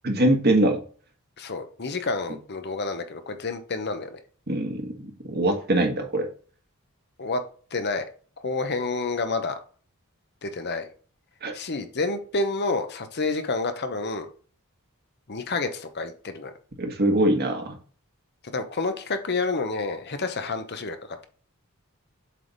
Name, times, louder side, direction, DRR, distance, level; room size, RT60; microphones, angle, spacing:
voice 1, 0.0-0.8 4.5-6.3 11.4-11.6 16.8-17.8, right 1 dB, 45° right, 4 dB, 1.4 m, -23 dB
voice 2, 1.4-4.2 7.2-7.4 7.7-8.0 8.4-9.6 10.4-10.9 11.5-14.3 15.3-16.5 18.5-21.0, left 3 dB, 50° left, 8 dB, 0.9 m, -29 dB
7.6 x 3.4 x 4.0 m, 0.41 s
head